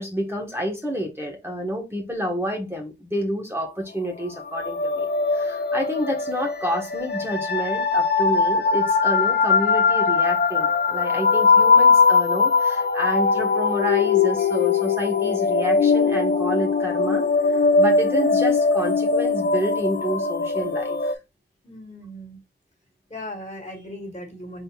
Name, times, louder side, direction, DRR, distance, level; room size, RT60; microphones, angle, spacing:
voice 1, 0.0-21.1, equal, 15° right, 1.4 m, -29 dB
sound 1, 4.3-21.1, left 4 dB, 60° left, 0.6 m, -20 dB
voice 2, 21.6-22.4 23.1-24.6, left 1 dB, 40° left, 1.8 m, -37 dB
4.2 x 3.8 x 2.4 m
wide cardioid pair, 65°, 19 cm